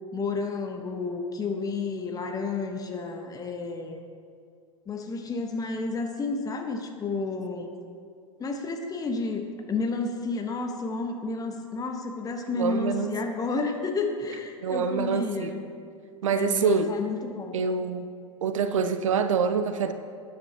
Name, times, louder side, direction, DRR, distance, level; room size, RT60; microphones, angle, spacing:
voice 1, 0.1-4.0 4.9-7.7 8.4-15.6 16.3-17.6, left 3 dB, 20° left, 4 dB, 1.4 m, -31 dB
voice 2, 12.6-13.1 14.6-15.6 16.2-16.9 17.5-18.1 18.4-19.9, right 6 dB, 70° right, 9 dB, 0.8 m, -26 dB
20.0 x 9.8 x 3.0 m, 2.3 s
figure-of-eight pair, 90°, 17 cm